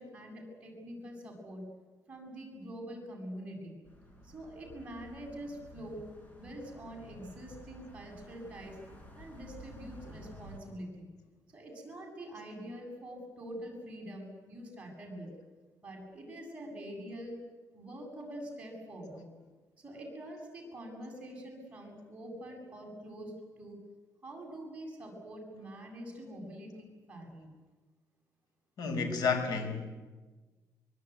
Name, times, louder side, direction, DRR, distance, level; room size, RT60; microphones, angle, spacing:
voice 1, 0.0-1.7 2.1-3.8 4.2-6.1 6.4-8.8 9.2-11.1 11.5-15.3 15.8-17.4 17.7-19.2 19.8-23.8 24.2-27.5, right 1 dB, 20° right, 0 dB, 7.7 m, -45 dB
sound 1, 3.8-10.6, equal, 25° left, 6.0 m, -52 dB
voice 2, 28.8-29.9, left 5 dB, 75° left, 6 dB, 5.1 m, -31 dB
24.0 x 23.5 x 9.4 m, 1.3 s
cardioid pair, 155°, 7 cm